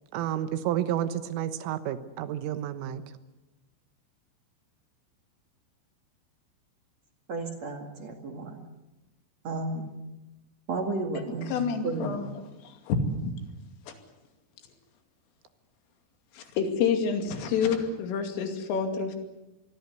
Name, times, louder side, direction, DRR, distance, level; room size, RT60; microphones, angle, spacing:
voice 1, 0.1-3.0, right 11 dB, 85° right, 11 dB, 3.8 m, -30 dB
voice 2, 7.3-8.6 9.4-9.9 10.7-12.2, right 2 dB, 45° right, 4 dB, 2.5 m, -33 dB
voice 3, 11.5-12.3 12.6-13.4 13.9-14.0 16.4-19.2, left 5 dB, 85° left, 5 dB, 5.1 m, -28 dB
26.5 x 21.0 x 8.2 m, 1.0 s
omnidirectional pair, 5.7 m